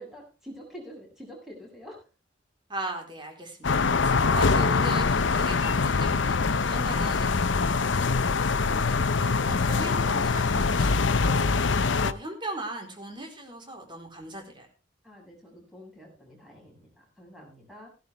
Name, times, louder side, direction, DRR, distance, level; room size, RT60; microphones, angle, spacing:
voice 1, 0.0-2.1 15.0-17.9, equal, ahead, -2 dB, 7.3 m, -46 dB
voice 2, 2.7-11.5 11.9-14.7, right 1 dB, 25° right, 2 dB, 4.0 m, -39 dB
sound 1, 3.6-12.1, left 4 dB, 70° left, 0.7 m, -24 dB
16.5 x 11.5 x 3.5 m, 0.32 s
head